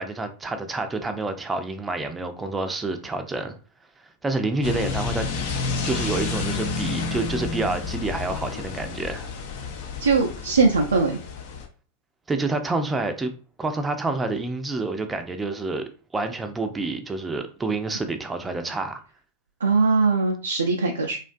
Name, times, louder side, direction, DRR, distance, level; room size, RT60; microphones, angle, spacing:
voice 1, 0.0-3.6 4.2-5.3 5.8-9.3 12.3-13.3 13.6-15.8 16.1-19.0, right 3 dB, 15° right, 0.4 m, -28 dB
sound 1, 4.6-11.7, left 4 dB, 60° left, 0.5 m, -30 dB
voice 2, 10.0-11.2 19.6-21.2, right 4 dB, 85° right, 0.3 m, -21 dB
2.4 x 2.2 x 2.5 m
hypercardioid pair, 100°, 0 cm